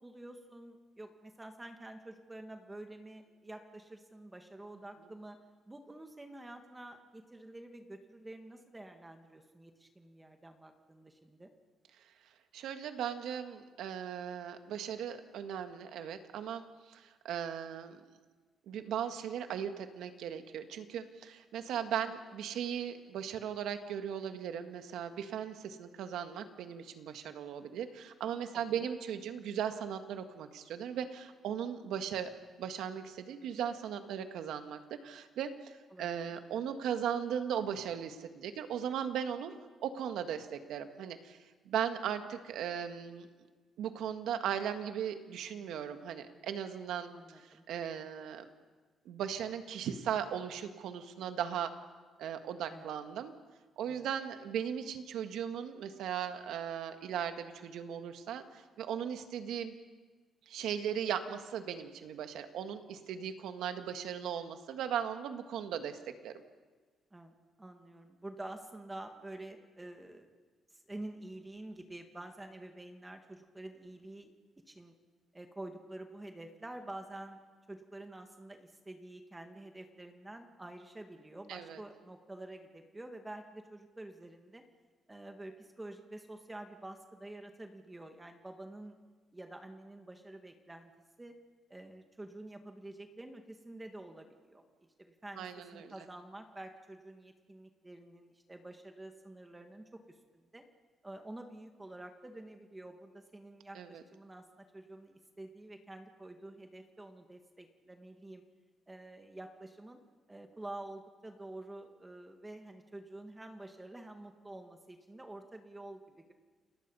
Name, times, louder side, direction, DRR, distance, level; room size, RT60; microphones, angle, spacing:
voice 1, 0.0-5.4 5.7-11.5 28.5-28.9 35.9-36.3 47.1-47.6 52.7-53.0 53.9-54.1 67.1-70.3 70.7-74.3 74.7-74.9 75.3-77.4 77.7-84.6 85.1-89.0 89.3-90.9 91.2-91.3 91.7-94.6 95.0-100.6 101.0-108.4 108.9-110.0 110.3-116.3, right 1 dB, 15° right, 5 dB, 2.0 m, -48 dB
voice 2, 12.5-18.0 18.7-32.3 32.6-39.5 39.8-41.4 41.6-43.3 43.8-48.5 49.0-51.7 52.2-53.3 53.8-59.7 60.5-66.3 81.5-81.8 95.4-95.9 103.7-104.0, right 8 dB, 80° right, 7 dB, 1.7 m, -38 dB
29.5 x 19.0 x 5.6 m, 1.4 s
cardioid pair, 90°, 0 cm